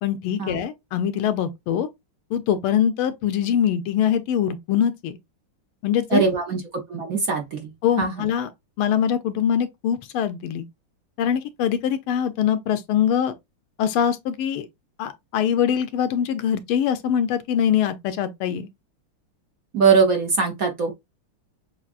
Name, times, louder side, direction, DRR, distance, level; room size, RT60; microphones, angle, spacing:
voice 1, 0.0-1.9 2.3-5.2 5.8-6.2 7.8-8.5 8.8-10.6 11.2-13.3 13.8-14.7 15.0-18.7, left 9 dB, 80° left, 1.5 m, -23 dB
voice 2, 6.1-6.6 6.9-7.7 8.0-8.2 19.7-20.9, right 5 dB, 55° right, 1.1 m, -21 dB
7.1 x 2.4 x 2.4 m
omnidirectional pair, 2.4 m